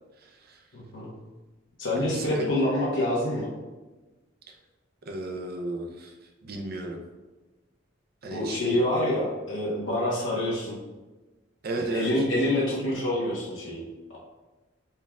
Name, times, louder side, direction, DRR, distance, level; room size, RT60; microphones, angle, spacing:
voice 1, 0.2-0.6 2.0-2.5 5.1-6.1 6.4-7.0 8.2-8.8 11.6-12.1, right 1 dB, 55° right, 3 dB, 0.6 m, -34 dB
voice 2, 0.7-1.1 1.8-3.5 8.3-10.8 11.7-13.8, left 1 dB, 75° left, -5 dB, 1.0 m, -27 dB
4.5 x 3.5 x 2.3 m, 1.2 s
head